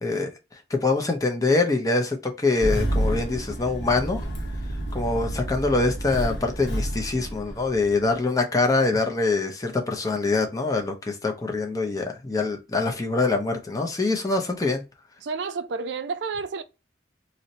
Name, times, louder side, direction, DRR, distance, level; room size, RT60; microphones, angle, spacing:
voice 1, 0.0-4.2 4.9-14.8, left 3 dB, 20° left, 0.5 m, -24 dB
Engine starting, 2.6-8.1, right 1 dB, 70° left, 0.8 m, -29 dB
voice 2, 15.2-16.6, right 4 dB, 75° right, 0.4 m, -30 dB
2.7 x 2.1 x 3.9 m
head